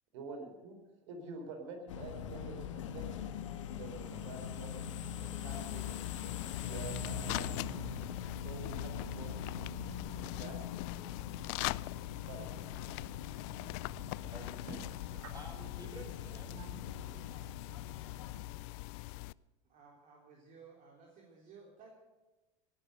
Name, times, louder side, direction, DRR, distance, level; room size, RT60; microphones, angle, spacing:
voice 1, 0.1-0.8 1.1-3.2 3.7-4.9 5.2-7.9 8.4-9.7 10.1-10.7 12.2-12.5 14.2-14.3 15.1-15.3 16.5-16.7, right 3 dB, 75° right, 5 dB, 3.9 m, -48 dB
sound 1, 1.9-18.4, left 7 dB, 90° left, 1.5 m, -43 dB
sound 2, 5.5-19.3, left 23 dB, 65° left, 0.4 m, -43 dB
voice 2, 12.9-13.5 13.9-14.8 15.3-16.5, right 1 dB, 25° right, 0 dB, 5.4 m, -52 dB
voice 3, 19.6-21.9, right 5 dB, 50° right, -1 dB, 3.6 m, -57 dB
17.5 x 11.5 x 6.7 m, 1.1 s
hypercardioid pair, 95°, 15 cm